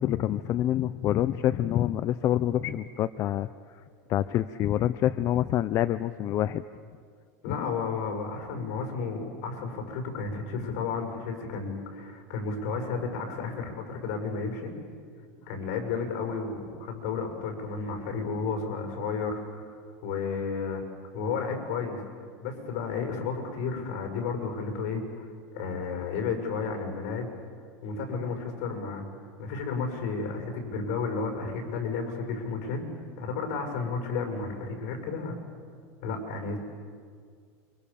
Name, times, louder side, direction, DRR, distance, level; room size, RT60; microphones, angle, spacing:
voice 1, 0.0-3.8 4.1-6.6 7.5-7.6, left 12 dB, 35° left, 13 dB, 0.6 m, -27 dB
voice 2, 7.4-14.7 15.4-19.6 20.0-20.8 21.1-22.0 22.4-25.3 25.5-27.3 27.8-29.0 29.4-32.8 33.2-35.4 36.0-36.6, left 4 dB, 65° left, 3 dB, 6.8 m, -32 dB
29.0 x 25.0 x 7.1 m, 2.1 s
supercardioid pair, 150°, 9 cm